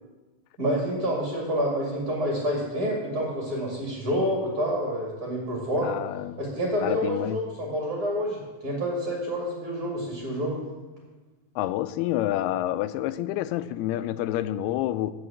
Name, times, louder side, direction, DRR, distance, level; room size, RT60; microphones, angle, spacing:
voice 1, 0.6-5.9 6.4-10.6, equal, 30° right, 2.3 m, -28 dB
voice 2, 5.8-6.4 6.8-7.4 11.6-15.1, left 13 dB, 90° left, 2.5 m, -28 dB
15.0 x 5.6 x 8.5 m
omnidirectional pair, 4.4 m